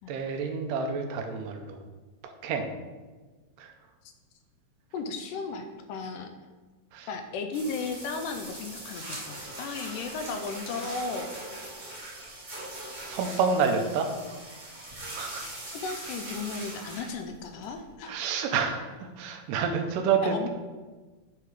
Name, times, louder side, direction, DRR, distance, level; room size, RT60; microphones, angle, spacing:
voice 1, 0.1-1.8 2.2-2.7 3.6-3.7 6.9-7.1 13.0-14.1 15.1-15.5 18.1-20.5, right 5 dB, 80° right, 5 dB, 2.3 m, -28 dB
voice 2, 4.9-6.3 7.1-11.3 15.3-18.1 20.2-20.5, left 4 dB, 80° left, 6 dB, 2.1 m, -35 dB
sound 1, 7.5-17.9, right 1 dB, 45° right, 0.6 m, -41 dB
10.0 x 3.6 x 4.8 m, 1.3 s
omnidirectional pair, 4.0 m